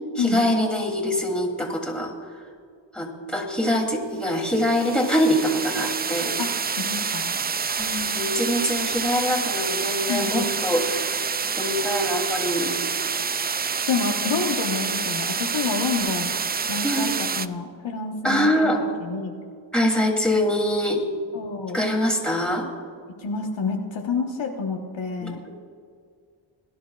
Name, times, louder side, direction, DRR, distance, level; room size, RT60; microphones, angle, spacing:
voice 1, 0.1-2.1 2.9-6.3 7.8-11.3 11.5-12.8 16.8-17.1 18.2-18.8 19.7-21.0 21.7-22.7 25.2-25.5, equal, ahead, -1 dB, 3.0 m, -24 dB
sound 1, 4.4-17.5, right 5 dB, 25° right, 0.3 m, -27 dB
voice 2, 6.8-7.3 10.1-10.4 13.9-16.3 16.7-19.3 21.3-21.8 23.2-25.4, left 5 dB, 70° left, 2 dB, 1.3 m, -28 dB
21.0 x 11.0 x 2.4 m, 2.2 s
cardioid pair, 65°, 47 cm